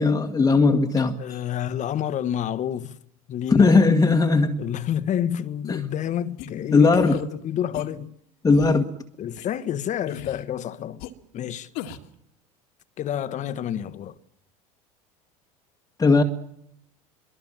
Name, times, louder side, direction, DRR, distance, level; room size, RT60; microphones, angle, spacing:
voice 1, 0.0-1.4 3.5-4.6 5.7-5.8 6.7-7.2 8.4-8.9 16.0-16.2, left 4 dB, 20° left, 1.8 m, -18 dB
voice 2, 1.2-3.0 3.3-3.7 4.6-8.1 9.2-11.1 11.3-11.7 13.0-14.2, left 10 dB, 45° left, 1.5 m, -29 dB
sound 1, 6.4-6.5 6.9-7.2 7.7-7.9 8.5-8.8 9.4-9.5 10.1-10.5 11.0-11.1 11.8-12.1, left 10 dB, 65° left, 2.1 m, -37 dB
24.5 x 23.0 x 7.6 m
hypercardioid pair, 80°, 18 cm